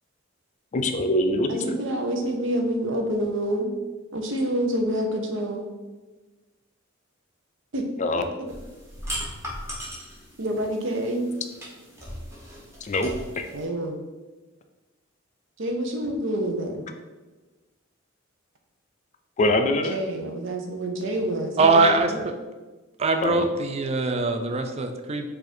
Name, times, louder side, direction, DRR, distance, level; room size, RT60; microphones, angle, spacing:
voice 1, 0.7-1.8 8.0-8.3 12.8-13.5 19.4-20.0 23.2-23.5, left 1 dB, 35° left, 6 dB, 0.4 m, -24 dB
voice 2, 1.5-3.7 4.1-5.7 7.7-7.8 10.4-11.3 13.5-14.0 15.6-16.8 19.9-21.9 22.1-22.2, right 1 dB, 70° right, 4 dB, 0.7 m, -27 dB
sound 1, 8.5-13.6, equal, 15° right, 1.1 m, -38 dB
voice 3, 21.6-22.4 23.0-25.3, right 3 dB, 30° right, 6 dB, 0.4 m, -22 dB
4.7 x 2.5 x 4.2 m, 1.2 s
head